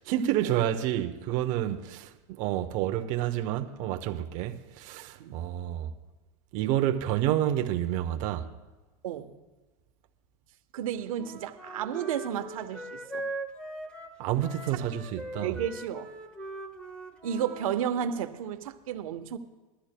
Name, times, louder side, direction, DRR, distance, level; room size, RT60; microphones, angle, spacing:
voice 1, 0.1-5.9 6.5-8.5 14.2-15.5, right 12 dB, 45° right, 0.9 m, -29 dB
voice 2, 10.7-13.2 15.4-16.1 17.2-19.4, right 9 dB, 80° right, 1.0 m, -32 dB
Wind instrument woodwind instrument, 11.1-17.7, right 2 dB, 5° left, 1.3 m, -40 dB
21.5 x 13.0 x 2.2 m
supercardioid pair, 140°, 18 cm